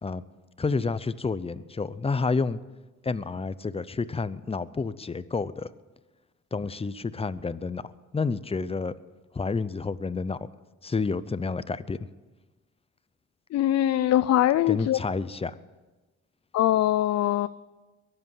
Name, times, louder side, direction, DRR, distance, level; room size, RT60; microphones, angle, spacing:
voice 1, 0.6-2.6 3.0-5.7 6.5-8.9 9.3-10.5 10.8-12.0 14.7-15.6, left 4 dB, 20° left, 16 dB, 0.6 m, -29 dB
voice 2, 13.5-15.0 16.5-17.5, left 13 dB, 60° left, 14 dB, 0.5 m, -22 dB
22.0 x 8.0 x 7.3 m, 1.2 s
cardioid pair, 90°, 30 cm